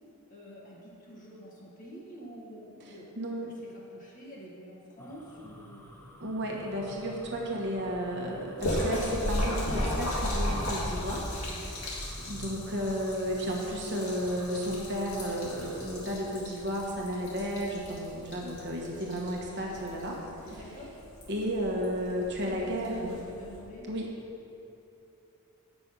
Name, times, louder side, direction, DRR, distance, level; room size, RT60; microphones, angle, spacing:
voice 1, 0.3-6.0 11.5-11.9 20.5-21.0 22.1-23.9, equal, 35° left, -5 dB, 1.7 m, -47 dB
voice 2, 2.8-3.5 6.2-11.3 12.2-20.2 21.3-23.1 23.9-24.1, equal, 50° right, -1 dB, 1.2 m, -33 dB
sound 1, 5.0-16.0, equal, 10° left, 0.5 m, -51 dB
Splash splatter, 8.6-23.6, equal, 70° left, 2.0 m, -36 dB
7.6 x 6.1 x 5.3 m, 2.8 s
head